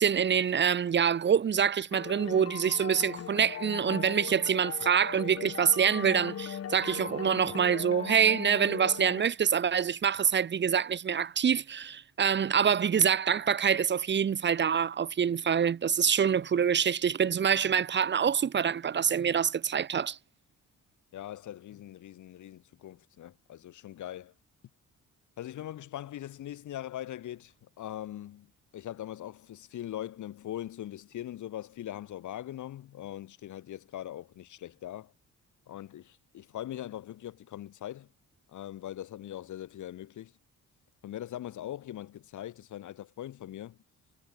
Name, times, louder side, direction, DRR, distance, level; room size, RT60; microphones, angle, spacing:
voice 1, 0.0-20.2, right 7 dB, 35° right, 0.9 m, -26 dB
sound 1, 1.9-9.2, left 9 dB, 50° left, 1.6 m, -39 dB
voice 2, 21.1-24.3 25.4-35.1 35.7-38.1 38.5-40.3 41.0-43.8, left 12 dB, 75° left, 6.2 m, -41 dB
cardioid pair, 90°, 30 cm